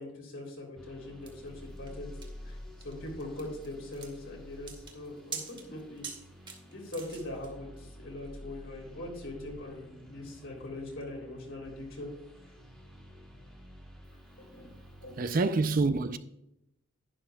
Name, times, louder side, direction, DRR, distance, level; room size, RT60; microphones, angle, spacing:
voice 1, 0.0-2.1 2.4-2.6 2.8-6.0 6.6-12.1 14.5-14.7 15.0-15.3, left 1 dB, 60° left, 3.2 m, -42 dB
sound 1, 0.8-15.5, equal, 5° left, 1.8 m, -50 dB
sound 2, 1.3-7.5, right 5 dB, 20° right, 1.1 m, -45 dB
voice 2, 15.2-16.2, right 3 dB, 40° right, 0.4 m, -26 dB
11.0 x 10.5 x 2.3 m
head